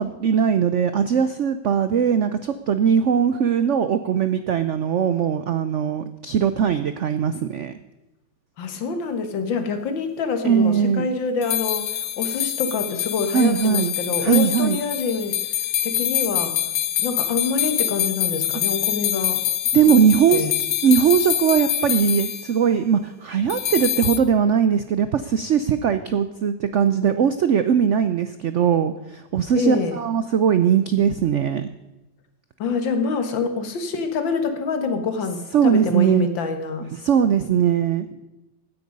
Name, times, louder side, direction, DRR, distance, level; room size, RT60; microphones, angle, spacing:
voice 1, 0.0-7.8 10.4-11.1 13.3-13.9 14.2-14.8 19.7-20.5 20.8-31.7 35.5-36.3 36.9-38.1, right 7 dB, 85° right, 12 dB, 0.6 m, -20 dB
voice 2, 8.6-15.4 15.8-16.6 17.0-19.4 19.9-20.0 20.3-20.5 29.6-30.0 32.6-36.9, left 4 dB, 85° left, 7 dB, 2.2 m, -26 dB
sound 1, 11.4-22.5 23.5-24.2, left 11 dB, 65° left, 1.3 m, -25 dB
16.0 x 10.0 x 5.3 m, 1.0 s
omnidirectional pair, 2.0 m